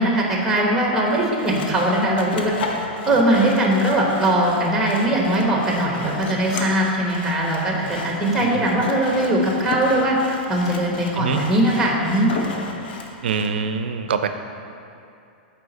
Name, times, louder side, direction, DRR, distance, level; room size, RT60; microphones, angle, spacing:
voice 1, 0.0-2.5 3.0-10.2 10.5-12.3, right 1 dB, 5° right, -2 dB, 1.3 m, -20 dB
Sawing, 1.1-13.5, left 3 dB, 70° left, 0.8 m, -33 dB
voice 2, 13.2-14.3, right 6 dB, 80° right, 9 dB, 0.5 m, -24 dB
8.2 x 4.4 x 4.1 m, 2.7 s
hypercardioid pair, 125°, 6 cm